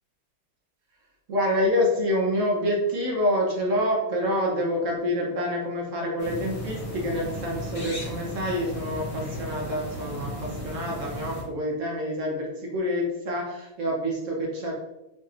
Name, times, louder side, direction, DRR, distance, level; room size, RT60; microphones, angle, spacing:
voice 1, 1.3-14.9, equal, 60° right, -2 dB, 0.9 m, -27 dB
sound 1, 6.2-11.4, equal, 35° left, 0.6 m, -35 dB
5.0 x 2.9 x 2.4 m, 0.92 s
omnidirectional pair, 2.1 m